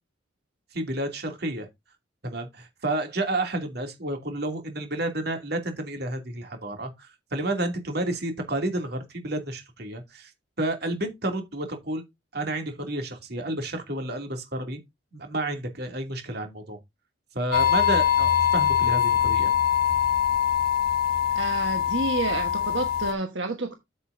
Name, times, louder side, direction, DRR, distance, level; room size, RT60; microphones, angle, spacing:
voice 1, 0.7-1.7 2.2-10.3 10.6-12.0 12.3-14.8 15.1-16.8 17.3-19.5, right 1 dB, 55° right, 2.7 m, -30 dB
sound 1, 17.5-23.1, left 9 dB, 50° left, 1.9 m, -23 dB
voice 2, 21.3-23.7, right 2 dB, 80° right, 1.4 m, -29 dB
8.6 x 8.3 x 2.7 m
head